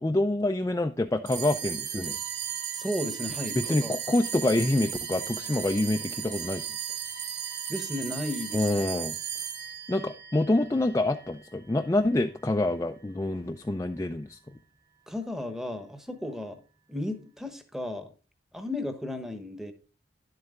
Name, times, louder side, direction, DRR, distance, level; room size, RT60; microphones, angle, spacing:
voice 1, 0.0-2.2 3.5-6.7 8.5-9.2 9.9-14.4, left 2 dB, 15° left, 6 dB, 0.4 m, -26 dB
sound 1, 1.3-11.9, right 9 dB, 40° right, 1.3 m, -36 dB
Bowed string instrument, 2.0-9.0, right 2 dB, 65° right, 1.2 m, -48 dB
voice 2, 2.7-3.9 7.7-8.6 15.1-16.6 16.9-18.1 18.5-19.7, left 1 dB, ahead, 9 dB, 1.0 m, -34 dB
10.5 x 7.9 x 3.6 m, 0.35 s
head